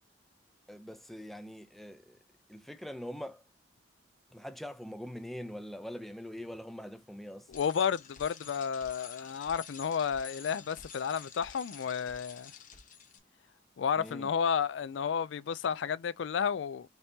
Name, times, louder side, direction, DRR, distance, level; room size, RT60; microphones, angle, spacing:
voice 1, 0.7-2.2 2.5-3.4 4.3-7.5 14.0-14.3, equal, ahead, 0.5 m, -43 dB
voice 2, 7.5-12.5 13.8-16.9, left 7 dB, 75° left, 0.4 m, -32 dB
Bicycle, 7.5-13.2, left 7 dB, 45° left, 1.0 m, -50 dB
5.3 x 2.9 x 2.7 m
head